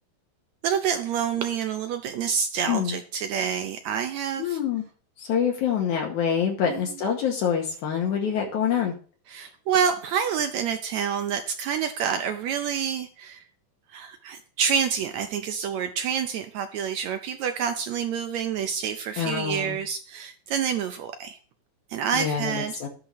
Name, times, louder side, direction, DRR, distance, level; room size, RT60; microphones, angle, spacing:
voice 1, 0.6-4.6 6.6-7.0 9.3-13.4 13.9-21.4 21.9-22.8, right 7 dB, 80° right, 7 dB, 1.6 m, -28 dB
voice 2, 2.7-3.0 4.4-4.8 5.2-8.9 19.2-19.8 22.1-22.9, left 8 dB, 70° left, 1 dB, 2.3 m, -26 dB
13.0 x 10.5 x 3.0 m, 0.42 s
omnidirectional pair, 3.9 m